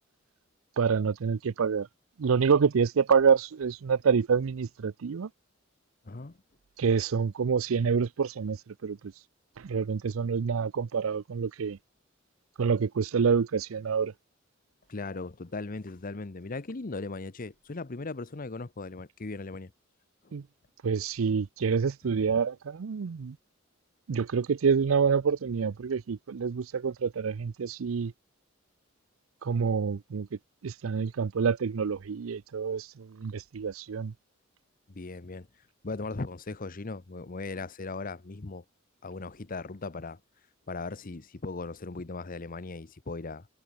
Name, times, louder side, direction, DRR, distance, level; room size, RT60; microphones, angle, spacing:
voice 1, 0.8-1.9 2.2-5.3 6.8-9.1 9.6-11.8 12.6-14.1 20.3-20.4 20.8-23.4 24.1-28.1 29.4-30.3 30.6-34.1, right 6 dB, 90° right, 0.5 m, -27 dB
voice 2, 6.0-6.4 14.9-19.7 20.2-20.3 22.2-22.4 34.9-35.5 35.8-38.6 39.0-40.2 40.7-43.5, left 3 dB, 45° left, 0.9 m, -38 dB
head